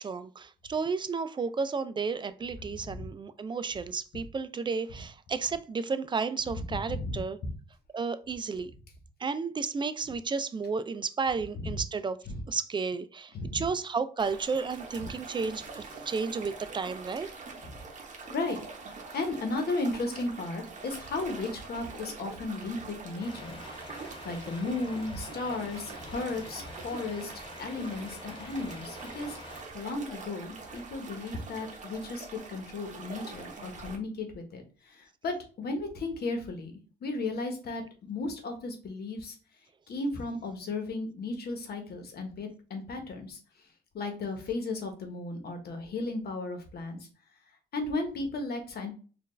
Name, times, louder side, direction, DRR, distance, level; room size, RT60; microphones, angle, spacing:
voice 1, 0.0-7.4 7.9-8.7 9.2-12.2 12.5-17.3, right 5 dB, 25° right, 0.3 m, -32 dB
voice 2, 2.8-3.1 6.5-6.6 6.9-7.5 11.6-11.7 12.3-12.4 13.3-13.6 15.0-15.1 17.6-17.7 18.3-23.9 24.2-29.4 29.7-39.3 39.9-43.4 43.9-47.1 47.7-48.9, left 2 dB, 65° left, 1.1 m, -35 dB
sound 1, 14.2-34.0, right 4 dB, 45° right, 1.0 m, -44 dB
Truck, 23.2-29.6, left 3 dB, 30° left, 0.5 m, -48 dB
4.3 x 2.5 x 3.2 m
cardioid pair, 95°, 18 cm